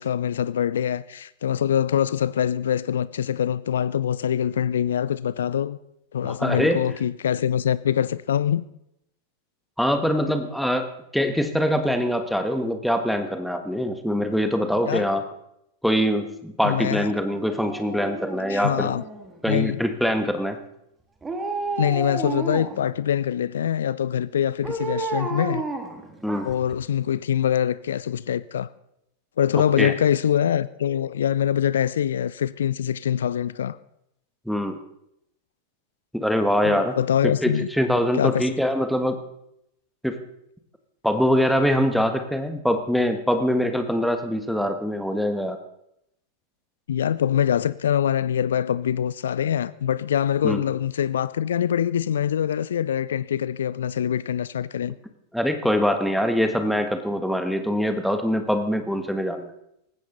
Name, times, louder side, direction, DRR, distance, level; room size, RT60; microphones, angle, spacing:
voice 1, 0.0-5.8 6.1-8.6 14.9-15.1 16.6-17.1 18.5-19.0 19.5-19.8 21.8-25.6 26.4-28.7 29.4-33.8 36.6-37.7 38.1-38.5 46.9-55.0, left 9 dB, 65° left, 0.5 m, -24 dB
voice 2, 6.2-6.8 9.8-15.2 15.8-18.9 19.4-20.6 26.2-26.5 29.8-29.9 34.5-34.8 36.1-36.9 37.2-39.2 40.0-40.2 41.0-45.6 50.4-50.6 55.3-59.5, equal, ahead, 1.7 m, -23 dB
Dog, 17.5-19.5 21.2-22.9 24.6-26.7 27.1-27.2, right 2 dB, 15° right, 2.5 m, -31 dB
19.0 x 16.0 x 4.1 m
figure-of-eight pair, 90°, 0 cm